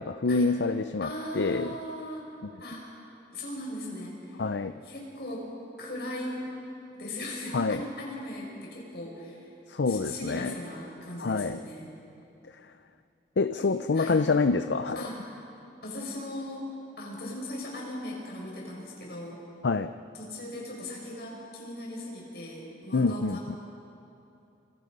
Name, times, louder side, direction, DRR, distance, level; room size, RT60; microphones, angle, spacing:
voice 1, 0.0-1.7 4.4-4.8 7.5-7.8 9.7-10.5 11.2-11.6 13.4-15.0 19.6-19.9 22.9-23.6, left 3 dB, 90° left, 10 dB, 0.6 m, -27 dB
voice 2, 1.0-2.3 2.6-2.9 3.3-4.4 4.8-5.5 5.8-6.5 6.9-9.5 9.9-11.9 13.9-14.2 14.9-15.2 15.8-16.7 17.0-19.4 20.2-23.6, left 1 dB, 65° left, -2 dB, 6.4 m, -38 dB
27.5 x 26.0 x 5.4 m, 2.8 s
head